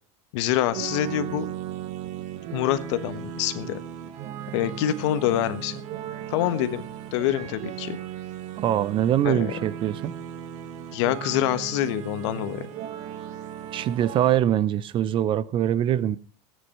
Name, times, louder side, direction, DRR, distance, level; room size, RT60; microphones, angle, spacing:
voice 1, 0.3-1.5 2.5-3.8 4.5-5.8 6.3-6.8 7.1-8.0 9.2-9.5 10.9-12.7, left 12 dB, 70° left, 1.3 m, -26 dB
sound 1, 0.7-14.4, right 10 dB, 50° right, 1.4 m, -36 dB
voice 2, 8.5-10.2 13.7-16.2, right 11 dB, 35° right, 0.6 m, -23 dB
14.0 x 9.6 x 5.5 m
supercardioid pair, 140°, 15 cm